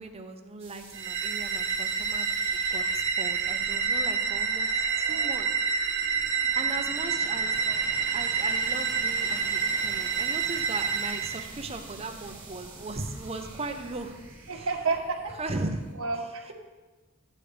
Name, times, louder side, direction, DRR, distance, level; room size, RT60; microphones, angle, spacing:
voice 1, 0.0-2.3 2.7-4.7 5.0-5.5 6.5-7.6 8.1-14.2 14.5-14.7 15.4-15.8, right 2 dB, 30° right, 5 dB, 0.8 m, -37 dB
sound 1, 0.6-15.9, right 2 dB, 15° right, 1.8 m, -47 dB
sound 2, 0.9-11.5, right 5 dB, 65° right, 0.6 m, -28 dB
voice 2, 4.9-5.2 7.6-7.8 14.5-15.4 15.9-16.5, right 4 dB, 85° right, 1 dB, 1.3 m, -31 dB
11.0 x 8.4 x 3.4 m, 1.2 s
head